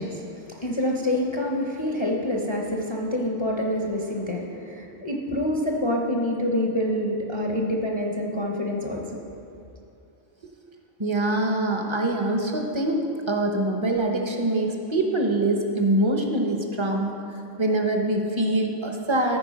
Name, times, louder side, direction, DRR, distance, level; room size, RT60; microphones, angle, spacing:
voice 1, 0.0-9.2, left 1 dB, 30° left, -1 dB, 0.6 m, -27 dB
voice 2, 11.0-17.2 17.6-19.4, right 1 dB, 30° right, 2 dB, 0.7 m, -24 dB
13.5 x 4.5 x 5.0 m, 2.7 s
omnidirectional pair, 1.1 m